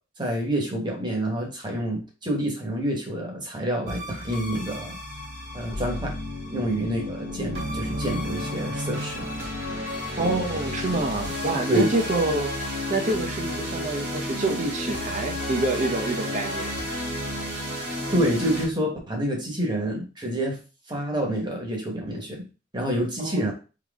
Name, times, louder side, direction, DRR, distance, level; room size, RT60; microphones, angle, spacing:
voice 1, 0.2-5.0 5.5-6.1 6.5-9.2 11.7-11.9 18.1-20.6 20.9-22.4 22.7-23.5, right 1 dB, 25° right, 0 dB, 1.2 m, -27 dB
sound 1, 3.9-18.6, left 1 dB, 65° right, 2.0 m, -32 dB
voice 2, 10.2-12.5 12.9-16.7 23.2-23.5, right 2 dB, 40° right, 4 dB, 0.8 m, -27 dB
3.9 x 3.0 x 3.5 m, 0.33 s
head